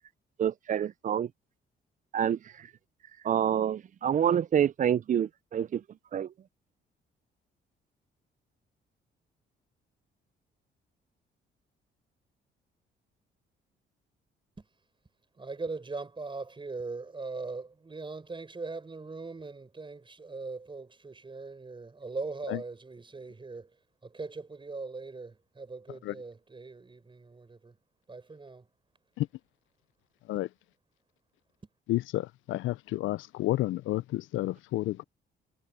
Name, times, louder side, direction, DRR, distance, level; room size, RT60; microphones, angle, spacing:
voice 1, 0.4-1.3 2.1-2.7 3.2-5.8 6.1-6.3, right 9 dB, 40° right, 0.4 m, -27 dB
voice 2, 15.4-23.8 24.0-27.8 28.1-28.7, right 3 dB, 25° right, 6.8 m, -40 dB
voice 3, 31.9-35.0, left 16 dB, 80° left, 0.4 m, -30 dB
cardioid pair, 90°, 20 cm